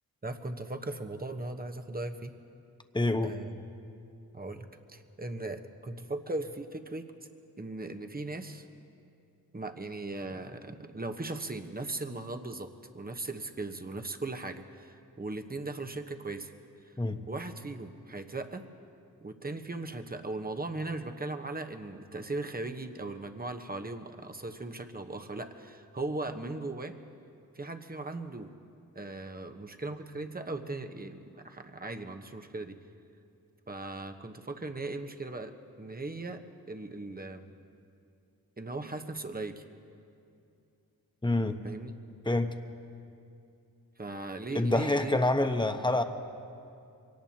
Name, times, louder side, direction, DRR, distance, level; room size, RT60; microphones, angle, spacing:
voice 1, 0.2-2.3 3.2-3.6 4.3-7.1 7.6-8.7 9.5-16.5 16.9-17.0 17.3-18.7 19.2-26.9 27.5-28.5 28.9-32.8 33.7-37.5 38.6-39.6 41.6-41.9 44.0-45.2, right 2 dB, 25° right, 6 dB, 1.1 m, -38 dB
voice 2, 2.9-3.3 17.0-17.2 41.2-41.6 42.2-42.5 44.5-46.0, left 2 dB, 10° left, 7 dB, 1.1 m, -27 dB
23.0 x 18.0 x 2.9 m, 2.6 s
cardioid pair, 40°, 38 cm